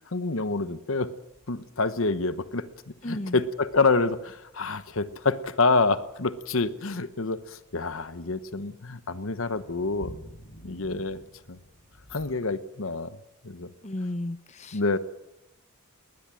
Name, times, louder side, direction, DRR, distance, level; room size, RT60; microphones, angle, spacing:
voice 1, 0.1-1.1 1.5-10.2 10.6-11.2 11.5-11.6 12.1-13.2 13.4-13.7 14.7-15.0, left 3 dB, 65° left, 13 dB, 1.0 m, -27 dB
sound 1, 1.3-12.3, equal, 85° left, 5.5 m, -52 dB
voice 2, 3.0-3.4 13.8-15.0, left 1 dB, 30° left, 11 dB, 0.8 m, -34 dB
21.0 x 19.5 x 7.6 m, 0.92 s
head